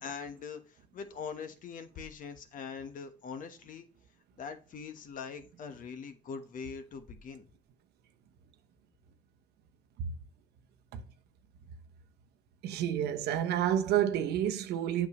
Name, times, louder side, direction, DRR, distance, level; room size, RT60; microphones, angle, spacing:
voice 1, 0.0-3.9 4.4-7.5, left 6 dB, 55° left, 1.2 m, -42 dB
voice 2, 12.6-15.1, right 10 dB, 75° right, 0.9 m, -29 dB
8.4 x 6.3 x 3.0 m
cardioid pair, 110°, 17 cm